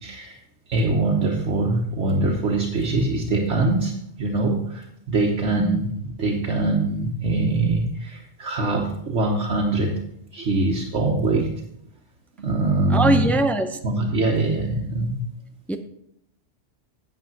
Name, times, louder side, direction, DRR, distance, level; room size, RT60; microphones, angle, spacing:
voice 1, 0.0-0.4 0.7-3.9 4.2-10.0 10.3-11.5 12.4-13.4 13.8-15.3, right 2 dB, 70° right, -1 dB, 1.4 m, -23 dB
voice 2, 12.9-13.7 15.7-15.8, right 1 dB, ahead, 7 dB, 0.4 m, -21 dB
9.1 x 6.7 x 5.9 m, 0.75 s
omnidirectional pair, 1.2 m